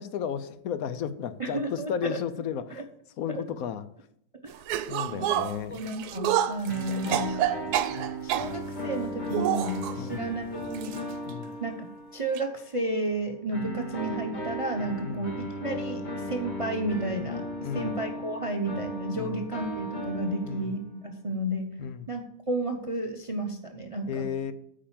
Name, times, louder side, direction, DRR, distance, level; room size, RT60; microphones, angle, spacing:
voice 1, 0.0-2.8 3.2-3.8 4.9-5.8 10.0-10.2 11.3-11.6 15.0-15.3 17.6-18.0 19.1-19.4 20.4-20.7 21.8-22.1 24.1-24.5, left 8 dB, 70° left, 13 dB, 1.1 m, -34 dB
voice 2, 1.4-2.2 2.8-2.9 3.3-3.5 4.4-4.5 5.1-5.3 5.7-7.7 8.2-11.0 11.6-11.9 12.1-21.8 22.1-24.3, right 1 dB, 35° right, 4 dB, 0.5 m, -32 dB
sound 1, 4.7-8.5 9.3-9.9 10.7-11.0 11.3-11.4 12.4-12.5, right 11 dB, 90° right, 1.1 m, -28 dB
sound 2, 6.7-12.5 13.5-20.9, equal, 30° left, 1.6 m, -36 dB
8.9 x 5.0 x 7.2 m, 0.72 s
omnidirectional pair, 1.6 m